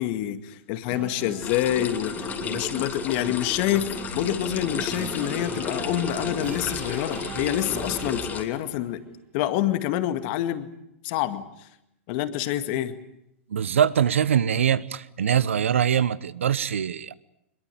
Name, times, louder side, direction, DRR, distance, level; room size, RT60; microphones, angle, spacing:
voice 1, 0.0-9.0 9.3-10.7 11.0-11.5 12.1-13.0, left 13 dB, 50° left, 2.1 m, -27 dB
sound 1, 0.9-8.8, right 5 dB, 25° right, 4.1 m, -38 dB
sound 2, 1.4-8.4, left 7 dB, 25° left, 2.9 m, -33 dB
voice 2, 13.5-17.1, right 9 dB, 85° right, 0.9 m, -23 dB
22.5 x 22.0 x 9.2 m
hypercardioid pair, 115°, 7 cm